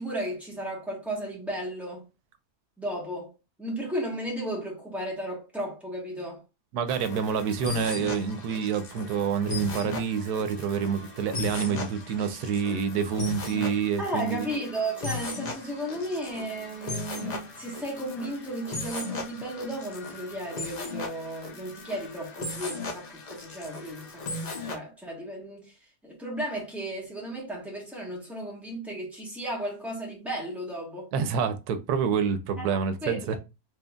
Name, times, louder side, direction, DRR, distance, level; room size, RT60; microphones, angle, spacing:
voice 1, 0.0-2.0 2.8-3.3 3.6-6.4 14.0-25.8 26.0-31.1 32.6-33.4, right 1 dB, ahead, 1.5 m, -34 dB
voice 2, 6.7-14.5 31.1-33.4, right 7 dB, 90° right, 1.1 m, -27 dB
sound 1, 6.9-24.8, left 3 dB, 45° left, 0.6 m, -37 dB
4.3 x 3.1 x 2.3 m
omnidirectional pair, 1.6 m